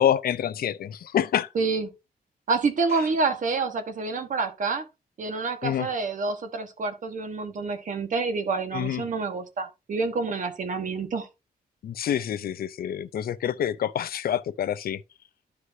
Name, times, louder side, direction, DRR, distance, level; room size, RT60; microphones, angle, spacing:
voice 1, 0.0-1.5 5.6-5.9 8.7-9.0 11.8-15.0, left 10 dB, 70° left, 0.5 m, -27 dB
voice 2, 1.5-1.9 2.5-4.8 5.2-11.3, right 4 dB, 55° right, 1.4 m, -28 dB
12.5 x 4.8 x 2.7 m
wide cardioid pair, 170°, 16 cm